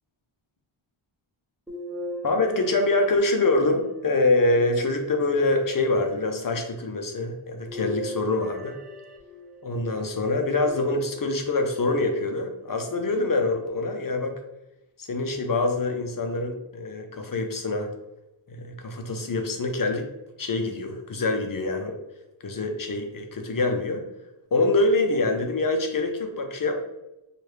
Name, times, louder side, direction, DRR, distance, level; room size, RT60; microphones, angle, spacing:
sound 1, 1.7-3.9 4.7-5.7 7.7-9.7 10.7-11.5 12.2-12.3 13.7-13.8, left 1 dB, ahead, 0.7 m, -38 dB
voice 1, 2.2-8.8 9.6-14.4 15.0-17.9 18.5-20.1 20.4-22.0 22.4-24.0 24.5-26.8, left 2 dB, 45° left, 4 dB, 0.6 m, -25 dB
4.6 x 2.4 x 3.2 m, 0.95 s
wide cardioid pair, 110°, 49 cm